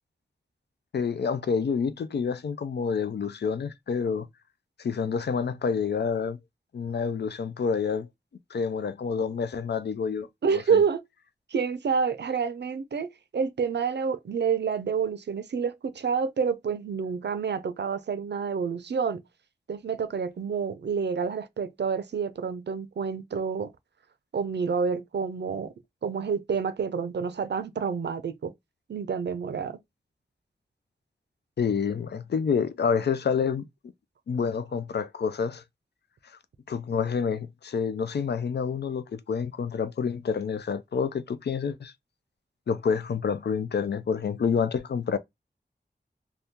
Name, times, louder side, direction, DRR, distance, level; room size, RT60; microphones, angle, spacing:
voice 1, 0.9-4.3 4.8-6.4 6.7-8.1 8.5-10.3 10.5-10.8 31.6-33.7 34.3-35.6 36.7-41.9 42.7-45.2, left 6 dB, 75° left, 0.4 m, -28 dB
voice 2, 10.4-11.0 11.5-19.2 19.7-23.7 24.3-25.7 26.0-28.5 28.9-29.8, right 6 dB, 80° right, 0.4 m, -28 dB
2.8 x 2.3 x 3.5 m
wide cardioid pair, 55°, 17 cm